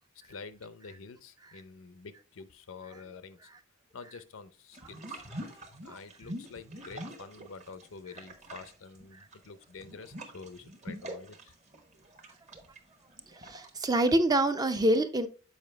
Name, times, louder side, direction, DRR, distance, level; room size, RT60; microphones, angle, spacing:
voice 1, 0.2-3.4 3.9-5.2 5.8-11.5, left 4 dB, 80° left, 0.6 m, -48 dB
sound 1, 4.7-7.9 8.1-14.1, right 1 dB, 35° right, 1.0 m, -45 dB
voice 2, 13.4-15.3, right 1 dB, 20° right, 0.5 m, -26 dB
7.2 x 4.8 x 3.3 m
head